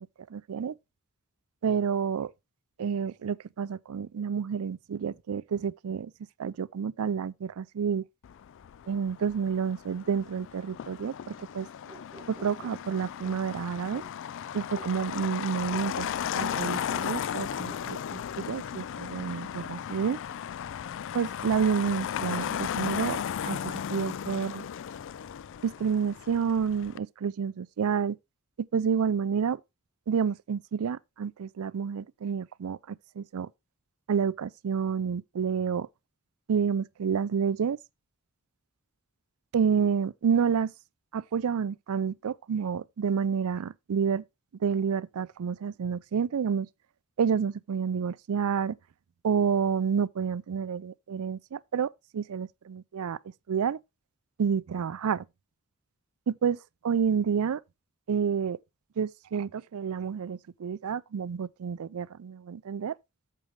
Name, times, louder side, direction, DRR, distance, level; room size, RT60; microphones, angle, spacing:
voice 1, 0.3-0.8 1.6-2.3 2.8-6.1 6.4-8.0 8.9-11.7 12.3-14.0 14.5-16.1 16.3-20.2 21.1-23.2 23.4-24.7 25.6-28.2 28.7-29.6 30.1-33.5 34.1-35.9 36.5-37.8 39.5-40.7 41.1-44.2 44.6-46.7 47.2-48.8 49.2-53.2 53.5-53.8 54.4-55.2 56.3-56.6 56.8-57.6 58.1-58.6 59.0-62.9, right 6 dB, 75° right, 0.4 m, -29 dB
Motor vehicle (road), 8.2-27.0, left 9 dB, 60° left, 0.4 m, -35 dB
sound 1, 11.9-13.4 13.9-14.1 14.7-14.9 15.7-15.9 16.4-16.6 16.9-17.1 17.6-17.8, right 2 dB, 25° right, 1.3 m, -50 dB
8.7 x 7.5 x 3.2 m
head